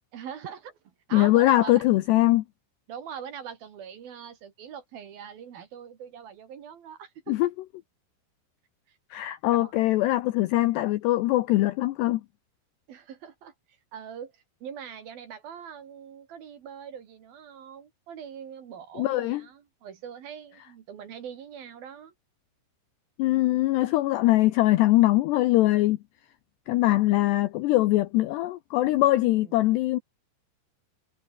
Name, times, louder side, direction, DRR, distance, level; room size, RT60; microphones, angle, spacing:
voice 1, 0.1-0.8 1.1-1.8 2.9-7.4 8.9-9.0 9.5-9.7 12.9-13.5 13.9-22.1, right 8 dB, 55° right, 3.3 m, -42 dB
voice 2, 1.1-2.4 7.3-7.5 9.1-12.2 19.0-19.4 23.2-26.0 26.7-30.0, left 17 dB, 80° left, 2.5 m, -22 dB
omnidirectional pair, 5.8 m